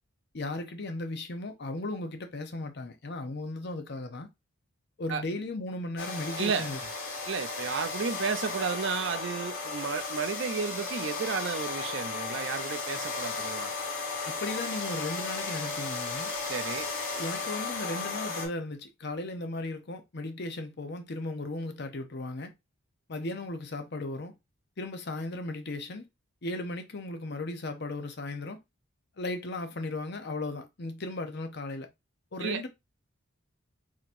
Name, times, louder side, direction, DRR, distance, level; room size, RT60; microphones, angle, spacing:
voice 1, 0.3-4.3 5.0-6.8 14.3-16.3 17.1-22.5 23.1-24.3 24.8-26.0 26.4-28.6 29.2-31.9 32.3-32.7, left 2 dB, 50° left, 0.7 m, -36 dB
sound 1, 6.0-18.5, left 3 dB, 85° left, 1.5 m, -35 dB
voice 2, 6.4-6.7 7.3-13.7 16.5-16.9 32.4-32.6, right 6 dB, 55° right, 0.5 m, -32 dB
4.2 x 2.9 x 2.5 m
head